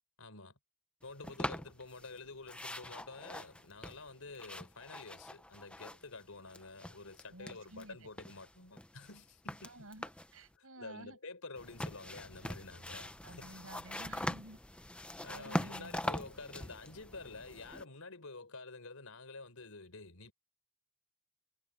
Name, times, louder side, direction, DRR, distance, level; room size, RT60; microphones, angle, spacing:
voice 1, 0.2-0.5 1.0-9.9 10.5-13.7 15.2-20.3, left 3 dB, 75° left, 4.2 m, -49 dB
sound 1, 1.2-2.2 2.5-6.2 6.5-7.9 8.2-10.4 11.6-17.8, left 1 dB, 5° left, 0.6 m, -42 dB
voice 2, 7.3-8.1 9.6-11.2 13.2-14.6 15.3-15.9, right 1 dB, 75° right, 6.2 m, -52 dB
head